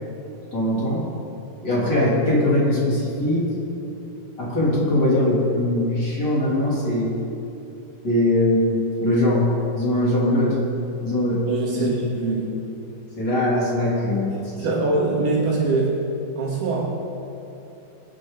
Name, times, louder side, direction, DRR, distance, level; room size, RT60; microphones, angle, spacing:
voice 1, 0.5-1.0 1.6-3.5 4.4-7.1 8.0-9.5 9.7-10.6 11.0-11.5 11.7-11.9 13.2-14.4, left 1 dB, 30° left, -5 dB, 3.2 m, -21 dB
voice 2, 11.5-12.7 14.6-16.0 16.4-17.0, right 3 dB, 65° right, -3 dB, 3.1 m, -23 dB
25.5 x 9.9 x 3.9 m, 2.9 s
omnidirectional pair, 4.2 m